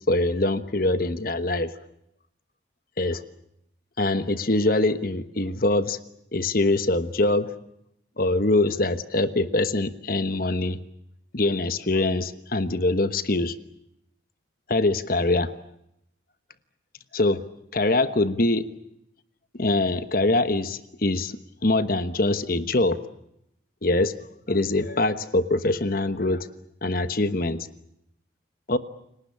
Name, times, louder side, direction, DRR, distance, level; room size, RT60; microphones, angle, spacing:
voice 1, 0.1-1.7 3.0-3.2 4.0-6.0 6.3-7.5 8.2-10.8 11.3-13.5 14.7-15.6 17.1-17.4 17.7-18.7 19.5-23.0 23.8-24.1 24.5-26.5 26.8-27.7 28.7-28.8, left 2 dB, 50° left, 11 dB, 1.2 m, -23 dB
29.5 x 18.5 x 8.6 m, 0.80 s
head